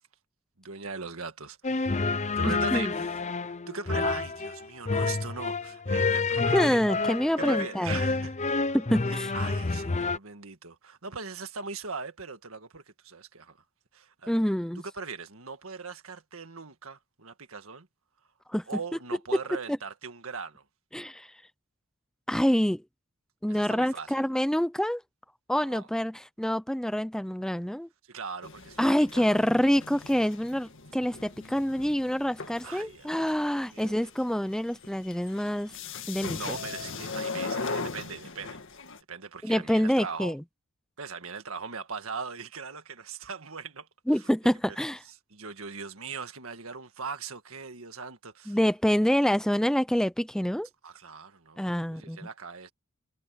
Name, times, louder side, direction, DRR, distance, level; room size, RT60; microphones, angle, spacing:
voice 1, 0.6-3.1 3.4-6.8 7.4-8.8 9.1-13.6 13.9-14.3 14.8-17.9 18.7-20.6 23.5-24.2 25.6-25.9 28.1-29.5 32.6-34.1 36.3-38.6 39.1-40.4 41.0-43.9 45.3-48.6 50.8-52.7, right 5 dB, 70° right, 1.9 m, -40 dB
sound 1, 1.6-10.2, left 3 dB, 35° left, 0.7 m, -29 dB
voice 2, 2.4-2.9 6.5-8.0 8.7-9.3 14.3-14.8 18.5-18.6 19.7-19.8 20.9-21.3 22.3-22.8 23.4-25.0 25.5-27.9 28.8-35.7 36.1-36.6 39.4-40.4 44.1-45.0 48.5-50.7 51.6-52.2, equal, 5° left, 0.6 m, -26 dB
sound 2, 28.4-39.0, left 4 dB, 65° left, 1.8 m, -39 dB
head